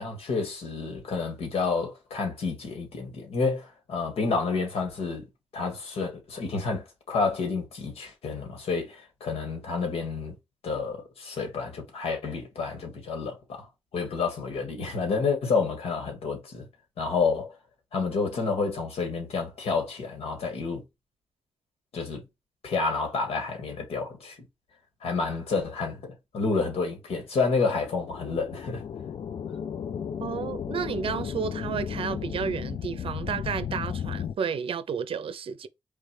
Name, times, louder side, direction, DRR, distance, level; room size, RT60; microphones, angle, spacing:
voice 1, 0.0-5.2 5.5-10.3 10.6-13.7 13.9-16.7 17.0-17.5 17.9-20.8 21.9-22.2 22.6-24.4 25.0-28.8, left 4 dB, 90° left, 1.9 m, -29 dB
sound 1, 27.6-34.4, left 8 dB, 60° left, 0.4 m, -34 dB
voice 2, 30.2-35.7, right 7 dB, 65° right, 0.6 m, -32 dB
4.6 x 3.3 x 3.3 m
wide cardioid pair, 115°, 10 cm